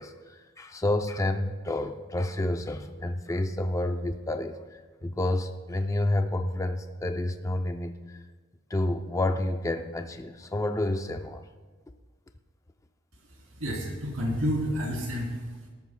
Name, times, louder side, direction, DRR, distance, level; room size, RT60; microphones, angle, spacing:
voice 1, 0.0-8.2 8.7-11.4, left 1 dB, 15° left, 7 dB, 0.4 m, -29 dB
voice 2, 13.2-15.7, equal, 80° right, -2 dB, 3.1 m, -30 dB
18.5 x 13.0 x 2.2 m, 1.4 s
head